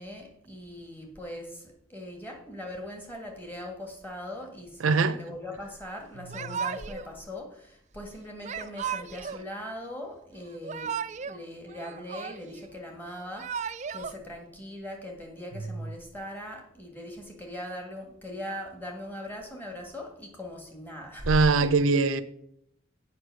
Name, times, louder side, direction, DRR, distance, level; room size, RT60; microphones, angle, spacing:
voice 1, 0.0-11.0 11.2-21.3 21.6-21.7, left 1 dB, 10° left, 1.7 m, -40 dB
voice 2, 4.8-5.2 21.3-22.2, right 4 dB, 85° right, 0.6 m, -22 dB
Yell / Crying sobbing, 6.3-7.1 8.4-9.4 10.5-11.4 11.7-12.7 13.2-14.1, right 7 dB, 35° right, 0.3 m, -35 dB
7.8 x 5.4 x 6.3 m
head